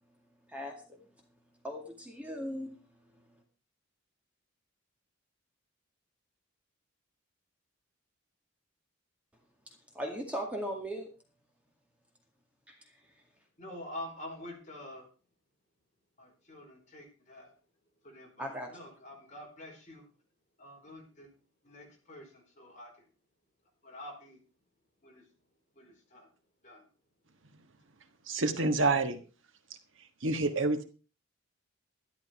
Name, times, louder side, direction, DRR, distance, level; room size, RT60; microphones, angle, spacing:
voice 1, 0.5-1.0 1.6-2.7 9.7-11.1 12.7-12.8 18.4-18.7, equal, 5° right, 1 dB, 2.1 m, -38 dB
voice 2, 13.6-15.1 16.2-17.5 18.0-20.0 20.6-21.3 21.6-23.0 23.8-24.4 25.0-25.3 25.7-26.3 26.6-26.9, left 1 dB, 35° left, 0 dB, 4.8 m, -47 dB
voice 3, 28.3-29.2 30.2-30.8, right 3 dB, 65° right, 8 dB, 1.4 m, -27 dB
12.0 x 12.0 x 4.6 m, 0.37 s
head